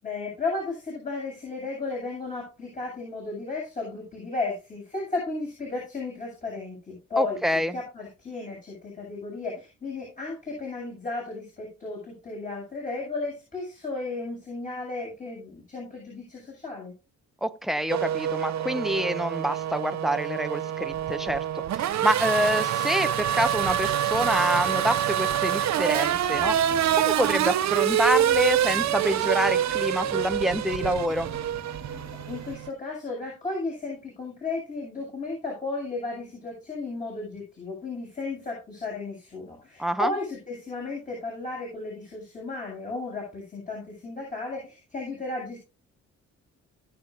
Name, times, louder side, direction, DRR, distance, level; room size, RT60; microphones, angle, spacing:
voice 1, 0.0-7.4 7.7-16.9 32.2-45.6, left 3 dB, 25° left, 7.6 m, -34 dB
voice 2, 7.2-7.8 17.4-26.6 26.9-31.3 39.8-40.1, equal, ahead, 1.1 m, -27 dB
Race car auto racing / Accelerating revving vroom, 17.9-32.7, right 10 dB, 65° right, 0.9 m, -26 dB
Subway metro underground, 24.6-32.5, left 4 dB, 75° left, 4.3 m, -46 dB
20.5 x 7.2 x 2.6 m
cardioid pair, 90°, 30 cm